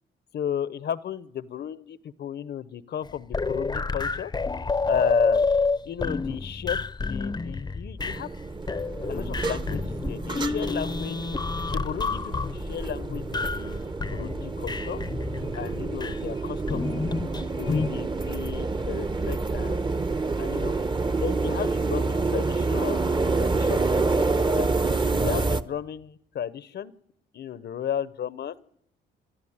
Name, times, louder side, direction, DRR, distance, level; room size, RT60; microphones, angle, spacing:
voice 1, 0.3-4.3 4.9-5.5 5.8-8.3 9.1-11.3 11.7-15.0 15.5-17.2 17.5-19.9 20.4-20.7 21.1-23.2 23.5-23.8 24.5-24.7 25.2-26.9 27.3-28.5, left 9 dB, 55° left, 16 dB, 0.8 m, -34 dB
sound 1, 3.1-8.4 8.7-13.7 14.0-16.2 16.7-17.9, left 4 dB, 20° left, 0.7 m, -29 dB
sound 2, 8.0-25.6, right 3 dB, 25° right, 1.0 m, -28 dB
28.5 x 13.0 x 8.8 m, 0.81 s
cardioid pair, 90°, 20 cm